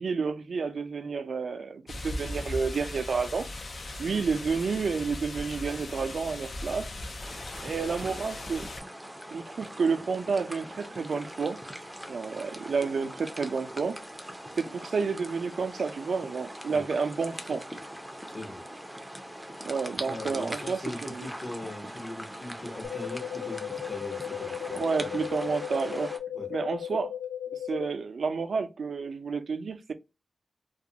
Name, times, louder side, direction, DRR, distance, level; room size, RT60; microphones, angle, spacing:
voice 1, 0.0-3.5 4.0-6.9 7.6-8.7 9.3-11.6 12.1-14.0 14.6-17.7 19.7-21.3 24.6-26.1 26.5-27.1 27.5-29.9, right 5 dB, 80° right, 0.4 m, -30 dB
sound 1, 1.9-8.8, left 1 dB, 60° left, 0.5 m, -38 dB
sound 2, 7.2-26.2, equal, 5° right, 0.5 m, -42 dB
voice 2, 18.3-18.6 20.1-25.3 26.3-26.5, left 1 dB, 40° left, 0.9 m, -40 dB
sound 3, 22.8-27.8, left 10 dB, 80° left, 0.8 m, -36 dB
2.4 x 2.1 x 2.7 m
wide cardioid pair, 100°, 0 cm